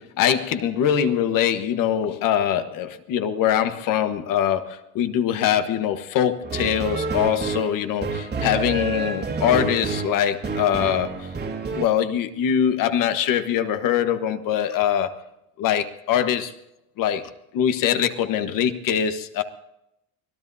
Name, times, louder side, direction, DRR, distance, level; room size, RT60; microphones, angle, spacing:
voice 1, 0.0-11.3 11.7-15.2 15.6-16.5 17.0-19.4, left 9 dB, 55° left, 9 dB, 1.4 m, -23 dB
sound 1, 6.4-11.9, right 3 dB, 25° right, 1.9 m, -28 dB
24.5 x 17.5 x 2.7 m, 0.83 s
cardioid pair, 155°, 39 cm